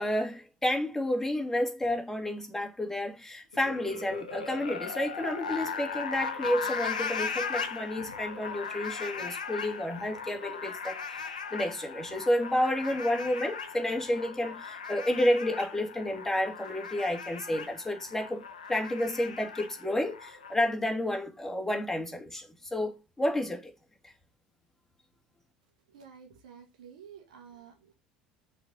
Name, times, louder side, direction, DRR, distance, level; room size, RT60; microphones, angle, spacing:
voice 1, 0.0-11.2 11.5-18.4 18.7-23.7, left 1 dB, 10° left, 2.6 m, -30 dB
sound 1, 3.5-20.5, left 5 dB, 80° left, 1.1 m, -38 dB
voice 2, 25.9-27.9, right 7 dB, 70° right, 1.8 m, -51 dB
6.6 x 4.5 x 6.4 m
figure-of-eight pair, 65°, 4 cm